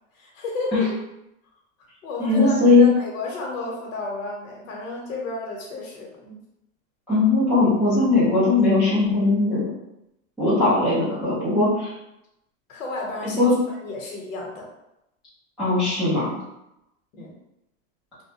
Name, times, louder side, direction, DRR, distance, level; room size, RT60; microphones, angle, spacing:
voice 1, 0.1-1.0 2.0-6.4 12.7-14.7 17.1-17.4, left 3 dB, 85° left, -1 dB, 0.9 m, -32 dB
voice 2, 2.2-2.8 7.1-9.6 10.4-11.9 13.4-13.5 15.6-16.3, left 3 dB, ahead, -17 dB, 0.4 m, -19 dB
2.6 x 2.1 x 2.8 m, 0.86 s
supercardioid pair, 170°, 39 cm